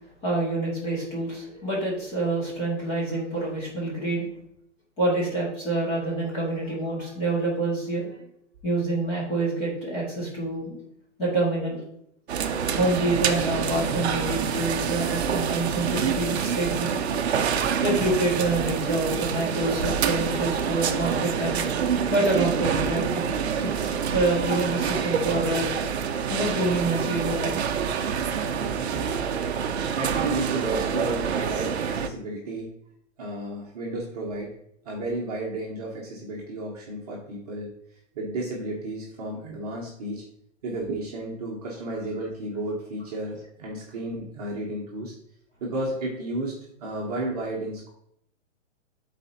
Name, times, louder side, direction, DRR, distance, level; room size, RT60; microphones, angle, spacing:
voice 1, 0.2-4.3 5.0-8.2 8.6-10.8 11.2-11.8 12.8-17.0 17.8-21.6 22.1-25.7 26.3-27.6, right 2 dB, 20° left, -6 dB, 2.1 m, -27 dB
sound 1, 12.3-32.1, right 7 dB, 55° right, 0.6 m, -27 dB
voice 2, 28.6-29.5 29.9-32.7 33.2-34.5 34.8-37.7 38.1-40.2 40.6-45.1 45.6-47.9, right 2 dB, 30° right, -3 dB, 1.1 m, -32 dB
12.0 x 4.2 x 2.8 m, 0.73 s
hypercardioid pair, 175°, 38 cm